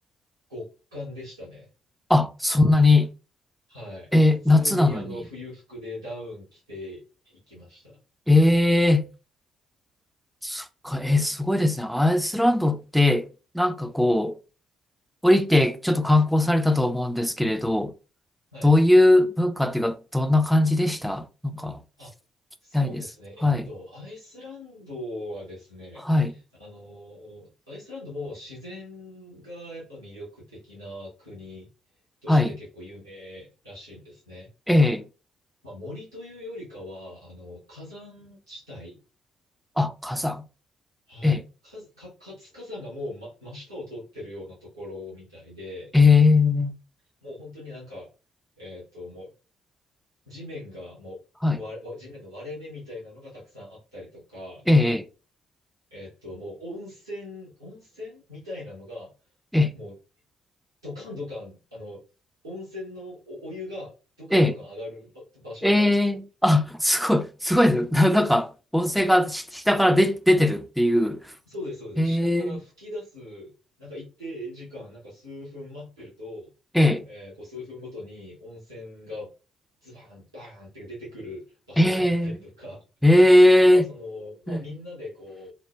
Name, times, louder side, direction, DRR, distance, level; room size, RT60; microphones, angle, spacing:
voice 1, 0.5-1.7 3.7-4.1 4.4-8.0 18.5-18.7 22.0-22.1 22.6-31.7 32.2-34.5 35.6-39.0 41.1-45.9 47.2-48.1 48.6-49.3 50.3-51.2 51.5-54.7 55.9-59.1 59.7-59.9 60.8-62.0 62.4-65.9 71.5-73.5 73.8-76.5 77.0-79.3 79.8-82.8 83.6-85.5, left 1 dB, 90° right, 0.9 m, -40 dB
voice 2, 2.1-3.1 4.1-5.2 8.3-9.1 10.4-13.3 13.5-14.4 15.2-17.9 18.6-21.3 21.5-21.8 22.7-23.0 23.4-23.7 26.0-26.3 32.3-32.5 34.7-35.0 39.8-40.4 41.2-41.4 45.9-46.7 51.4-51.6 54.7-55.1 59.5-59.7 64.3-64.5 65.6-71.2 72.0-72.6 76.7-77.1 81.8-82.4 83.0-83.8 84.5-84.6, left 1 dB, ahead, 0.3 m, -20 dB
3.0 x 2.1 x 2.2 m
figure-of-eight pair, 45°, 2 cm